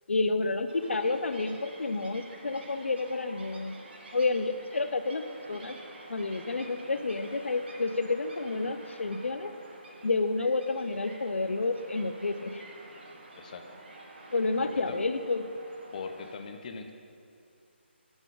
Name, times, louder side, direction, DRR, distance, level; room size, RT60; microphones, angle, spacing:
voice 1, 0.1-3.7 4.1-5.8 6.1-9.5 10.0-12.7 14.3-15.5, left 3 dB, 90° left, 10 dB, 0.6 m, -30 dB
sound 1, 0.7-16.4, right 2 dB, 60° right, 1.3 m, -49 dB
voice 2, 13.3-13.8 14.6-15.0 15.9-16.9, left 5 dB, 40° left, 6 dB, 0.7 m, -40 dB
8.9 x 8.0 x 3.9 m, 2.5 s
hypercardioid pair, 160°, 6 cm